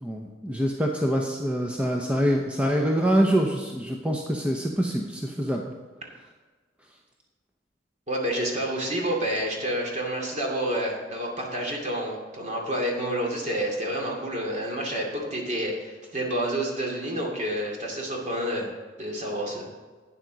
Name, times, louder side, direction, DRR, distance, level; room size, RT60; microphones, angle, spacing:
voice 1, 0.0-5.6, equal, 5° right, 0 dB, 0.8 m, -25 dB
voice 2, 8.1-18.7 19.0-19.7, right 1 dB, 40° right, -1 dB, 2.4 m, -29 dB
12.0 x 9.0 x 4.0 m, 1.4 s
head